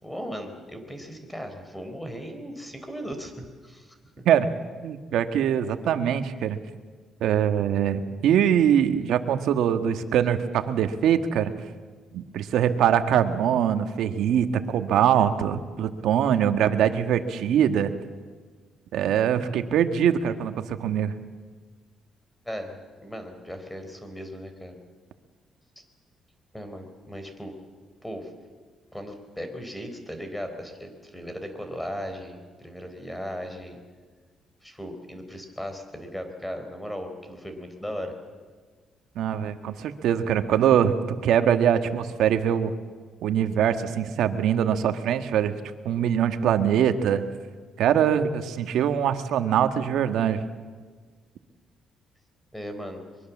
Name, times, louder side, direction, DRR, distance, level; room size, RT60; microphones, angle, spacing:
voice 1, 0.0-4.3 22.4-24.7 26.5-27.5 28.0-28.3 28.9-33.8 34.6-38.1 52.5-53.0, equal, 5° left, 7 dB, 4.4 m, -37 dB
voice 2, 4.8-6.6 7.2-11.5 12.1-17.9 18.9-21.1 39.1-42.7 43.2-45.5 45.8-47.2 47.8-50.4, right 9 dB, 80° right, 8 dB, 1.6 m, -23 dB
23.5 x 23.0 x 7.4 m, 1.5 s
cardioid pair, 90°, 0 cm